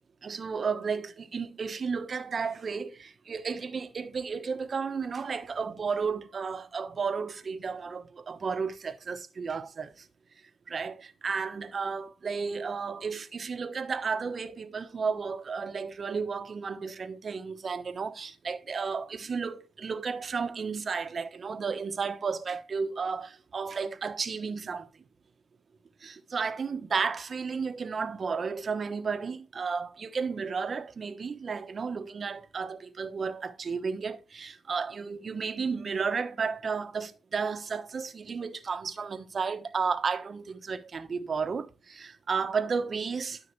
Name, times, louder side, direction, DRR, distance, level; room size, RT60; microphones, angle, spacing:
voice 1, 0.2-10.1 10.7-24.9 26.0-43.4, right 5 dB, 50° right, 1.2 m, -33 dB
13.0 x 5.6 x 3.2 m
cardioid pair, 75°, 0 cm